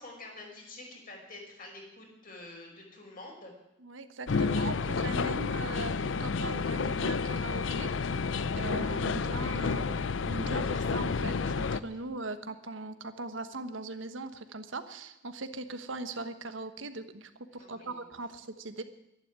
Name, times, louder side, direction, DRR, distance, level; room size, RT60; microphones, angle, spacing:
voice 1, 0.0-3.5 17.5-18.1, left 2 dB, 45° left, 0 dB, 5.2 m, -47 dB
voice 2, 3.8-7.9 8.6-18.8, right 2 dB, 85° right, 9 dB, 1.2 m, -40 dB
sound 1, 4.3-11.8, left 4 dB, 80° left, 0.6 m, -30 dB
12.5 x 11.0 x 9.6 m, 0.89 s
head